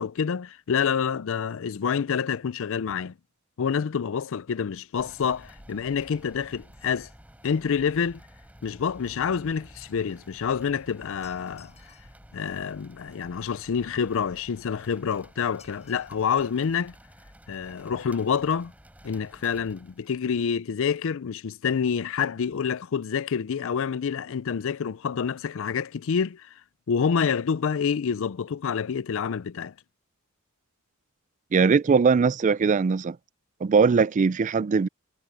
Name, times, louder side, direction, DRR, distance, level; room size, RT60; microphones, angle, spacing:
voice 1, 0.0-3.1 3.6-7.1 7.4-8.2 8.6-11.7 12.3-16.9 17.5-18.7 19.0-26.5 26.9-29.7, left 6 dB, 65° left, 0.4 m, -27 dB
sound 1, 5.0-20.3, equal, 5° right, 3.6 m, -52 dB
sound 2, 11.2-12.2 15.6-16.3 16.7-16.8 17.7-17.8 18.1-18.2 18.4-18.6 18.9-19.0, left 8 dB, 35° left, 4.8 m, -56 dB
voice 2, 31.5-33.2 33.6-34.9, right 5 dB, 35° right, 0.3 m, -20 dB
head